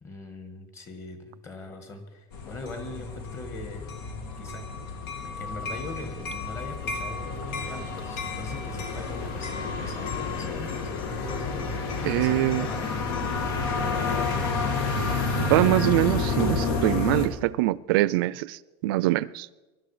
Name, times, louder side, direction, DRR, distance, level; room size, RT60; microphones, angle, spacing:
voice 1, 0.0-3.9 4.4-4.8 5.2-11.6 12.0-13.2 13.7-14.7, left 2 dB, 20° left, 1.9 m, -41 dB
sound 1, 2.3-17.3, left 4 dB, 75° left, 2.5 m, -30 dB
voice 2, 12.0-12.7 15.4-19.5, right 17 dB, 75° right, 0.5 m, -24 dB
22.5 x 12.0 x 5.0 m
cardioid pair, 165°, 12 cm